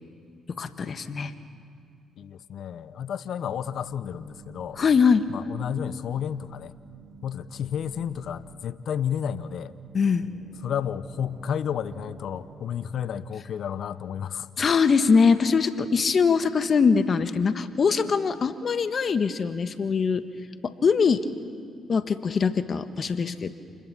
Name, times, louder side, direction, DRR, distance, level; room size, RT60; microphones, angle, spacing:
voice 1, 0.6-1.3 4.8-5.3 9.9-10.3 14.6-20.2 20.6-21.2 21.9-23.5, left 5 dB, 50° left, 10 dB, 1.4 m, -22 dB
voice 2, 2.2-4.8 5.3-6.8 7.2-9.7 10.6-14.5, left 8 dB, 65° left, 16 dB, 0.8 m, -31 dB
sound 1, 3.5-12.6, right 3 dB, 40° right, 7.1 m, -50 dB
28.5 x 21.0 x 7.4 m, 2.3 s
supercardioid pair, 55°, 0 cm